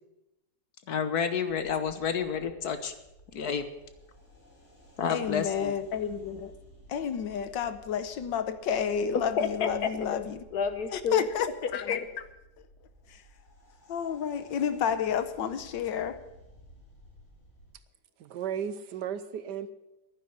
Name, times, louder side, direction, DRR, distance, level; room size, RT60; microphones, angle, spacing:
voice 1, 0.9-2.9 3.3-3.6 5.0-5.7 9.4-10.2 10.5-11.3 11.9-12.1, left 6 dB, 60° left, 10 dB, 1.6 m, -30 dB
sound 1, 1.5-17.7, equal, 40° left, 3.8 m, -55 dB
voice 2, 5.1-6.5 6.9-10.4 10.9-12.0 13.1-13.2 13.9-16.2, left 8 dB, 85° left, 12 dB, 1.7 m, -31 dB
voice 3, 18.2-19.7, right 8 dB, 70° right, 13 dB, 1.4 m, -35 dB
10.5 x 10.0 x 9.4 m, 0.94 s
omnidirectional pair, 1.9 m